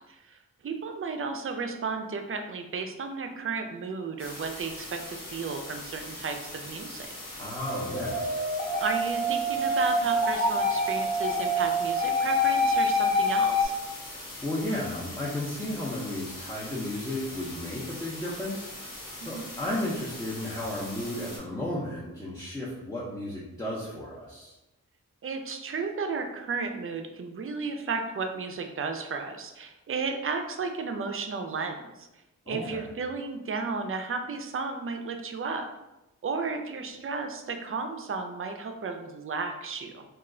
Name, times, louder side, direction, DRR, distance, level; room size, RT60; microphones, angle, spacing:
voice 1, 0.1-7.1 8.8-13.7 19.3-19.5 25.2-32.1 32.5-35.7 36.2-40.0, right 4 dB, 40° right, 5 dB, 0.4 m, -33 dB
sound 1, 4.2-21.4, left 1 dB, 80° left, 0.9 m, -42 dB
voice 2, 7.4-8.5 14.4-24.6 32.5-32.9, left 1 dB, 10° left, -6 dB, 0.6 m, -34 dB
sound 2, 7.6-13.7, left 1 dB, 55° left, 1.1 m, -26 dB
2.3 x 2.1 x 3.6 m, 0.98 s
wide cardioid pair, 70°, 32 cm